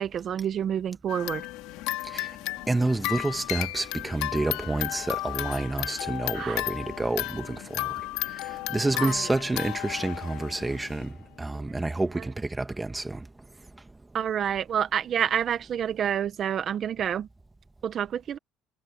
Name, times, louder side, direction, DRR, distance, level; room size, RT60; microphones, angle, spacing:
voice 1, 0.0-1.4 6.3-6.6 9.0-9.1 14.1-17.3 17.8-18.4, right 9 dB, 50° right, 1.6 m, -28 dB
sound 1, 1.1-11.1, left 19 dB, 80° left, 2.9 m, -34 dB
voice 2, 2.7-7.9 8.7-11.1 11.4-13.2, right 2 dB, 15° right, 2.2 m, -29 dB
supercardioid pair, 85°, 0 cm